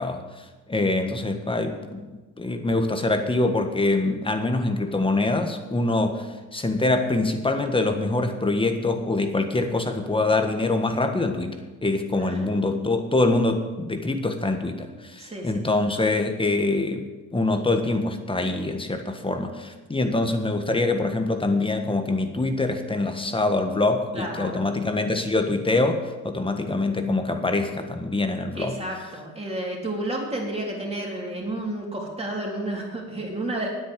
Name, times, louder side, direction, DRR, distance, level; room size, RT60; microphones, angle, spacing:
voice 1, 0.0-6.3 6.5-11.5 11.8-17.0 17.3-28.8, left 2 dB, 15° left, 6 dB, 1.5 m, -24 dB
voice 2, 15.2-15.6 24.1-24.7 28.6-33.7, right 1 dB, 20° right, -2 dB, 3.6 m, -31 dB
9.5 x 8.7 x 7.7 m, 1.2 s
cardioid pair, 90°, 30 cm